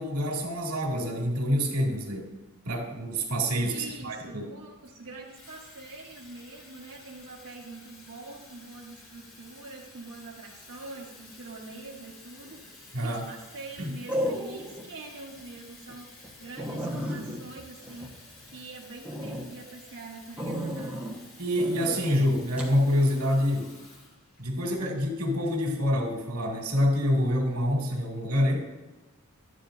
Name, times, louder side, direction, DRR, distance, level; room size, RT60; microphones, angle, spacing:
voice 1, 0.0-2.3 2.6-4.5 12.9-13.3 13.8-14.0 21.4-23.7 24.4-28.7, equal, 80° right, -1 dB, 2.4 m, -27 dB
voice 2, 3.7-21.0, right 3 dB, 60° right, -7 dB, 1.4 m, -45 dB
Water tap faucet / Fill (with liquid), 4.8-24.6, left 2 dB, 65° left, 3.2 m, -52 dB
sound 1, 12.5-12.9 14.1-14.9 15.3-15.4 15.9-16.0 16.2-16.3 16.6-18.6 19.0-19.5 20.4-21.2 21.6-22.0 22.6-22.8, equal, 5° right, 1.2 m, -33 dB
12.5 x 9.8 x 2.6 m, 1.1 s
head